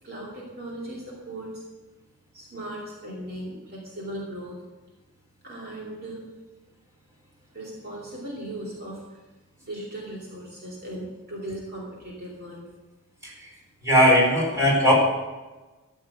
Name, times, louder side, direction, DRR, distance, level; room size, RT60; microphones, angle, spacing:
voice 1, 0.0-1.6 2.3-4.6 5.4-6.2 7.5-9.2 9.6-12.7, right 1 dB, 45° right, -4 dB, 2.7 m, -37 dB
voice 2, 13.8-14.9, equal, 15° right, -4 dB, 4.2 m, -18 dB
13.5 x 7.3 x 7.8 m, 1.2 s
head